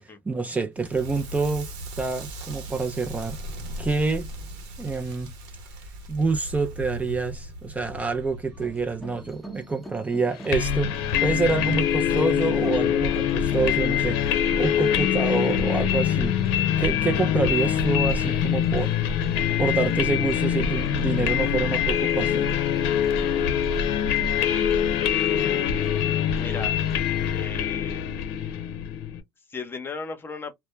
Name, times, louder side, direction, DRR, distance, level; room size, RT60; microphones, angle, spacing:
voice 1, 0.3-1.7 2.0-3.4 3.8-4.3 4.8-5.3 6.1-11.0 11.2-16.4 16.8-18.9 19.6-22.5, right 4 dB, 20° right, 0.5 m, -27 dB
Crackle, 0.8-9.7, right 1 dB, 75° right, 0.9 m, -38 dB
sound 1, 8.5-27.5, equal, ahead, 0.8 m, -46 dB
sound 2, 10.5-29.2, left 9 dB, 75° left, 0.6 m, -24 dB
voice 2, 25.4-25.8 26.3-26.8 27.3-28.1 29.5-30.5, left 4 dB, 25° left, 0.8 m, -36 dB
2.1 x 2.1 x 3.0 m
supercardioid pair, 90°, 8 cm